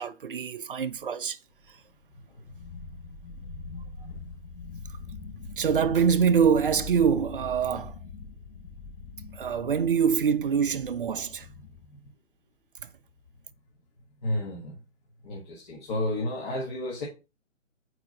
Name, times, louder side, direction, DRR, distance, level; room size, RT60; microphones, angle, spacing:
voice 1, 0.0-1.4 1.7-1.8 5.6-7.9 9.3-11.5 12.8-12.9, right 7 dB, 45° right, 0.5 m, -25 dB
sound 1, 1.6-1.7 1.9-2.0 2.4-11.9, left 4 dB, 60° left, 2.2 m, -42 dB
voice 2, 14.2-14.8 15.2-17.1, left 1 dB, 35° left, 1.5 m, -31 dB
6.2 x 4.7 x 3.8 m
figure-of-eight pair, 140°, 39 cm